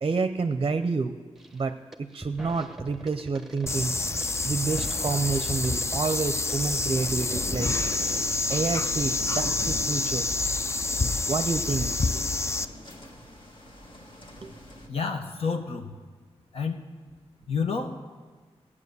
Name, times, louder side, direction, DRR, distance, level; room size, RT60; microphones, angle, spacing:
voice 1, 0.0-1.2 1.5-3.9 4.4-7.8 8.5-10.3 11.3-12.2 14.4-14.5, right 4 dB, 45° right, 9 dB, 0.6 m, -29 dB
sound 1, 1.4-1.6 1.9-8.2, right 1 dB, 5° right, 0.9 m, -42 dB
sound 2, 3.7-12.6, left 3 dB, 25° left, 0.4 m, -28 dB
sound 3, 7.3-14.9, left 1 dB, 50° left, 1.7 m, -42 dB
voice 2, 14.9-16.0 16.5-16.9 17.5-18.0, left 5 dB, 65° left, 4 dB, 1.0 m, -29 dB
16.5 x 8.6 x 6.8 m, 1.5 s
wide cardioid pair, 105°, 11 cm